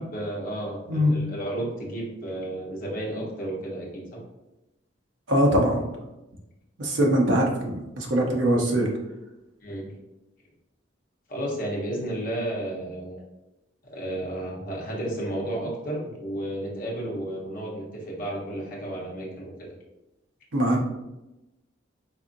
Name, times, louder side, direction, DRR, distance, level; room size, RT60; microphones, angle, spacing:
voice 1, 0.0-4.2 9.6-10.0 11.3-13.2 13.9-19.5, right 1 dB, 45° left, -4 dB, 0.9 m, -32 dB
voice 2, 5.3-5.8 6.8-8.9 20.5-20.8, equal, 75° right, -1 dB, 0.8 m, -22 dB
4.2 x 2.6 x 2.6 m, 0.97 s
head